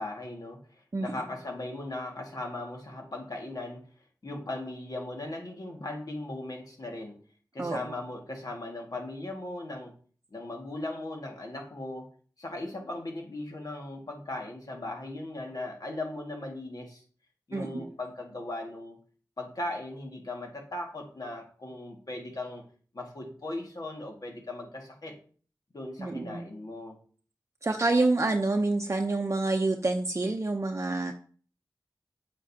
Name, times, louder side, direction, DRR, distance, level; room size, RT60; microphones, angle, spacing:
voice 1, 0.0-3.9 4.2-7.2 7.5-9.9 10.3-12.1 12.4-17.0 17.5-19.0 19.4-22.6 22.9-25.2 25.7-27.0, left 2 dB, 60° left, 1 dB, 1.8 m, -38 dB
voice 2, 17.5-17.9 26.0-26.5 27.6-31.1, right 2 dB, 40° right, 3 dB, 0.7 m, -27 dB
7.8 x 7.5 x 2.8 m, 0.43 s
wide cardioid pair, 55°, 7 cm